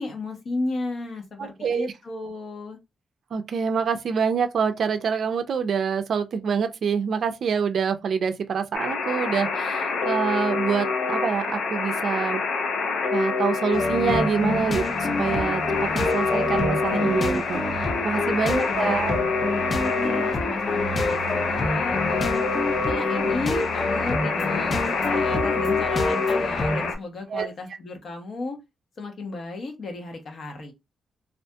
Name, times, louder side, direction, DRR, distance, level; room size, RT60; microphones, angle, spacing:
voice 1, 0.0-2.8 18.3-18.9 19.9-22.4 22.9-28.6 29.0-30.7, left 3 dB, 55° left, 0.8 m, -33 dB
voice 2, 1.4-1.9 3.3-12.4 13.1-15.6 15.9-19.1 27.3-27.5, right 6 dB, 60° right, 0.4 m, -26 dB
Alarm, 8.7-26.9, left 4 dB, 90° left, 0.5 m, -26 dB
sound 1, 13.7-26.9, left 2 dB, 30° left, 0.4 m, -28 dB
2.7 x 2.4 x 2.2 m
wide cardioid pair, 135°, 0 cm